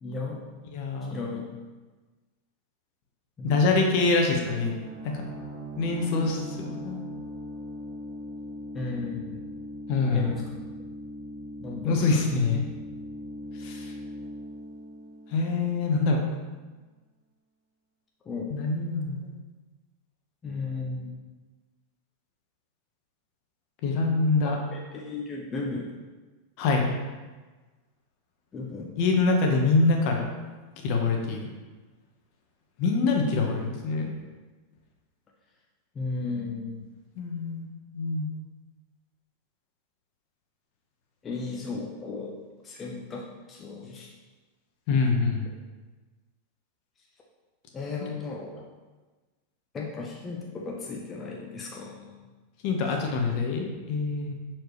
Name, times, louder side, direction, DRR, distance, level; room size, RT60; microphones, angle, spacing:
voice 1, 0.0-0.4 1.1-1.5 3.4-3.6 8.7-9.4 10.1-10.4 11.6-12.1 18.2-18.5 20.4-21.1 24.4-26.0 28.5-29.0 35.9-36.8 41.2-42.3 42.6-44.1 44.9-45.0 47.7-48.5 49.7-52.2, left 3 dB, 25° left, -2 dB, 0.8 m, -35 dB
voice 2, 0.7-1.1 3.4-4.7 5.0-5.3 5.8-7.0 9.9-10.4 11.8-12.6 13.6-13.9 15.3-16.2 18.5-19.3 23.8-24.6 26.6-26.9 29.0-30.3 30.8-31.4 32.8-34.1 37.2-37.7 37.9-38.3 44.9-45.5 52.6-54.3, left 3 dB, 55° left, 2 dB, 1.1 m, -25 dB
sound 1, 4.7-16.2, equal, 20° right, 1.7 m, -40 dB
6.6 x 4.4 x 3.2 m, 1.3 s
hypercardioid pair, 125°, 0 cm